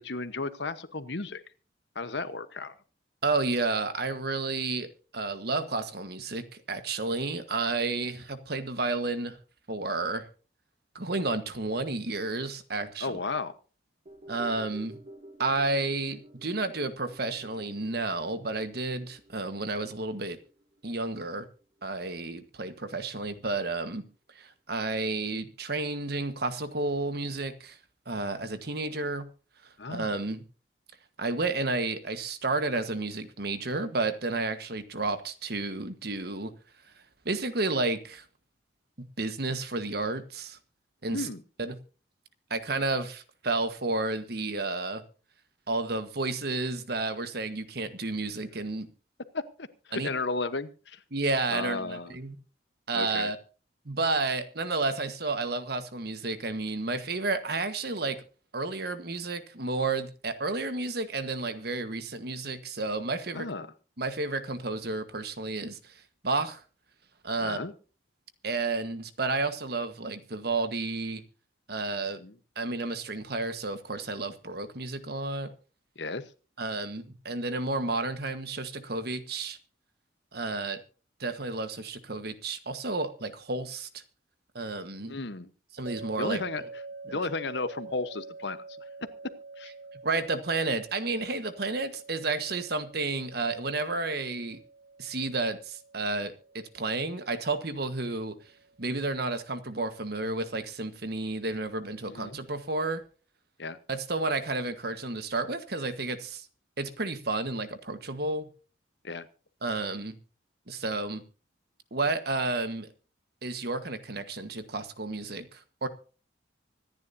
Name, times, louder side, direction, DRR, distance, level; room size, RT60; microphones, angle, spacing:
voice 1, 0.0-1.4 1.9-2.7 13.0-13.5 29.8-30.1 41.1-41.4 49.3-51.0 51.5-52.1 52.9-53.3 63.3-63.7 67.4-67.7 72.2-72.3 76.0-76.2 85.1-85.5 86.2-86.6 87.0-88.6 89.6-89.7 102.1-102.4 103.6-103.8 109.0-109.3, left 3 dB, 65° left, 1.1 m, -34 dB
voice 2, 3.2-4.9 5.1-9.4 9.7-10.3 10.9-13.2 14.3-15.0 15.4-20.4 20.8-21.5 21.8-24.0 24.3-27.8 28.1-29.3 29.9-30.4 31.2-36.5 37.2-38.2 39.0-40.6 41.0-41.3 41.6-41.8 42.5-45.0 45.7-48.9 49.9-50.1 51.1-52.4 52.9-53.4 53.8-58.2 58.5-63.5 64.0-66.6 67.2-67.6 68.4-71.2 71.7-72.2 72.5-75.5 76.6-79.6 80.3-80.8 81.2-84.0 84.5-85.1 85.7-86.4 87.1-87.2 90.0-94.6 95.0-98.3 98.8-103.0 103.9-106.5 106.8-108.5 109.6-110.2 110.7-111.2 111.9-112.9 113.4-115.9, right 3 dB, 55° right, 1.4 m, -31 dB
sound 1, 14.1-22.5 22.8-22.9, right 1 dB, 35° right, 1.4 m, -52 dB
sound 2, 85.9-99.0, right 3 dB, 85° right, 1.9 m, -47 dB
25.0 x 10.5 x 2.8 m
head